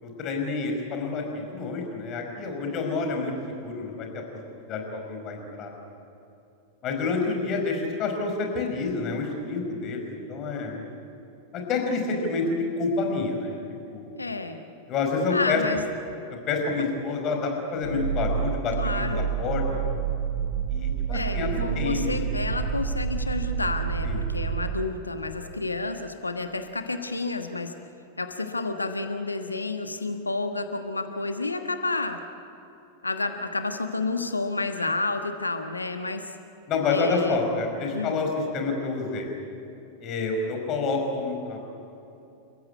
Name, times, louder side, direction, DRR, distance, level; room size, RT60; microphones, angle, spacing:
voice 1, 0.0-3.3 3.6-4.2 4.7-5.7 6.8-10.8 11.5-13.6 13.9-14.1 14.9-15.6 16.3-19.8 20.7-22.2 24.0-24.2 36.7-38.3 38.5-39.3 40.0-41.6, left 4 dB, 35° left, 2 dB, 5.1 m, -28 dB
voice 2, 14.2-14.6 15.3-15.8 18.8-19.3 21.1-27.7 28.2-32.2 33.0-36.3 36.9-37.4 37.9-38.2, left 3 dB, 80° left, 7 dB, 1.3 m, -30 dB
sound 1, 17.8-24.7, right 7 dB, 65° left, 7.9 m, -28 dB
29.5 x 15.0 x 9.7 m, 2.9 s
figure-of-eight pair, 90°, 0 cm